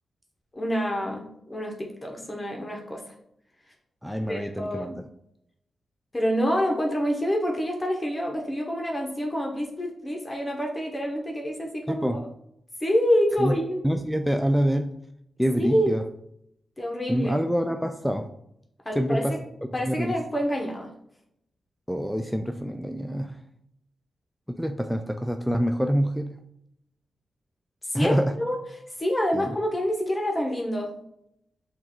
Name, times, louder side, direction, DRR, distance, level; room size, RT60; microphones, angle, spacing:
voice 1, 0.5-3.0 4.3-4.9 6.1-12.2 12.8-13.8 15.6-15.9 16.8-17.4 18.8-19.4 19.7-20.9 27.8-28.6 29.0-30.9, equal, 20° left, 0 dB, 0.9 m, -27 dB
voice 2, 4.0-5.0 11.9-12.2 13.4-13.5 13.8-14.9 15.4-16.0 17.1-18.3 19.0-19.4 19.8-20.2 21.9-23.4 24.5-26.3 27.9-28.4 29.3-29.5, equal, ahead, 6 dB, 0.3 m, -26 dB
5.9 x 2.4 x 3.7 m, 0.75 s
cardioid pair, 60°, 0 cm